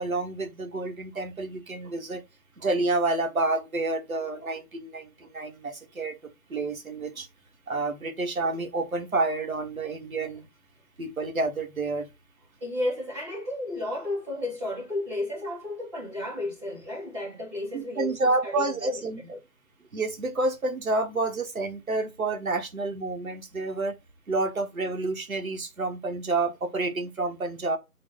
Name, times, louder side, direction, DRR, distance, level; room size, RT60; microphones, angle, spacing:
voice 1, 0.0-2.2 2.6-7.3 7.7-10.5 11.0-12.1 17.7-19.2 19.9-24.0 24.3-27.8, right 2 dB, 60° right, 1.1 m, -29 dB
voice 2, 12.6-19.4, left 1 dB, 15° right, 2.0 m, -33 dB
4.0 x 2.1 x 3.7 m
figure-of-eight pair, 180°, 47 cm